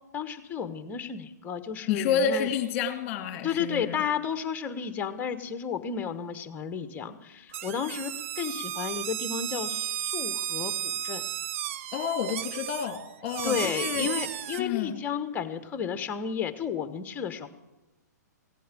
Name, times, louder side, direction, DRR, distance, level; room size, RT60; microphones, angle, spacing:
voice 1, 0.1-2.5 3.4-11.2 13.4-17.5, left 7 dB, 15° left, 10 dB, 1.1 m, -32 dB
voice 2, 1.8-4.0 11.9-14.1 14.6-15.0, left 7 dB, 35° left, 8 dB, 2.0 m, -29 dB
sound 1, 7.5-14.6, right 12 dB, 45° right, 0.5 m, -34 dB
16.5 x 9.2 x 7.5 m, 1.0 s
hypercardioid pair, 125°, 10 cm